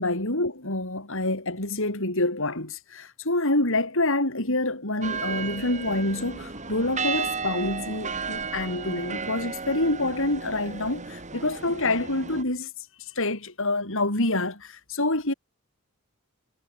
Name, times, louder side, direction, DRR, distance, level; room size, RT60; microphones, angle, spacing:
voice 1, 0.0-12.7 13.0-15.3, left 2 dB, 65° left, 7.3 m, -27 dB
sound 1, 5.0-12.4, right 5 dB, 35° right, 2.9 m, -34 dB
head